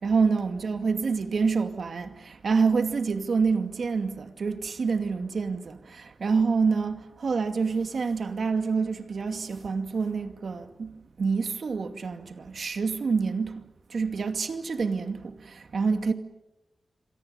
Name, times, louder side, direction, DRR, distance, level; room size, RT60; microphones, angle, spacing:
voice 1, 0.0-10.9 11.2-13.5 13.9-16.1, right 5 dB, 65° right, 2.4 m, -27 dB
28.0 x 24.0 x 7.0 m
wide cardioid pair, 115°, 0 cm